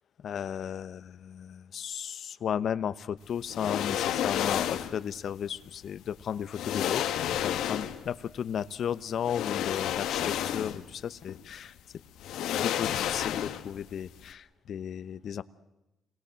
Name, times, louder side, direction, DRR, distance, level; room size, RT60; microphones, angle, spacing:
voice 1, 0.2-7.1 7.4-11.7 12.6-15.4, left 8 dB, 60° left, 16 dB, 0.9 m, -34 dB
sound 1, 3.5-5.0 6.1-6.2 6.5-8.1 9.2-10.9 11.3-11.4 12.2-13.8 14.1-14.2, left 11 dB, 85° left, 1.4 m, -31 dB
27.5 x 22.5 x 7.6 m, 0.96 s
cardioid pair, 90°, 0 cm